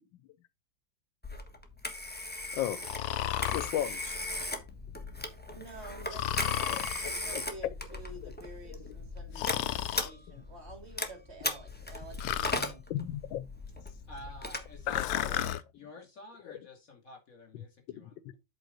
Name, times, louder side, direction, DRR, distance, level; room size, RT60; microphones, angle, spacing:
Telephone, 1.2-15.5, left 1 dB, 5° left, 1.0 m, -38 dB
Breathing, 2.8-3.7 6.1-7.1 9.3-10.1 12.2-12.7 14.9-15.6, left 12 dB, 70° left, 1.0 m, -32 dB
voice 1, 3.5-4.2 6.7-7.7 12.9-13.5 14.9-15.3 17.9-18.0, left 12 dB, 85° left, 1.4 m, -35 dB
voice 2, 5.5-12.8, right 2 dB, 35° right, 2.9 m, -49 dB
voice 3, 14.1-15.4 15.7-18.4, left 1 dB, 45° left, 2.8 m, -50 dB
8.1 x 4.4 x 5.1 m
omnidirectional pair, 2.0 m